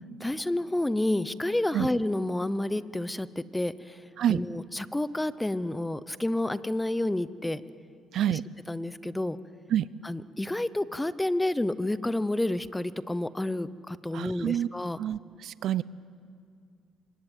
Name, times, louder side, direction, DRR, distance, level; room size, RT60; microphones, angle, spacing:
voice 1, 0.2-4.0 4.3-7.6 8.3-8.4 8.7-9.4 10.0-15.0, left 1 dB, 10° left, 15 dB, 0.8 m, -29 dB
voice 2, 14.1-14.7 15.0-15.8, right 11 dB, 65° right, 19 dB, 0.6 m, -27 dB
26.0 x 23.0 x 9.2 m, 2.4 s
cardioid pair, 100°, 0 cm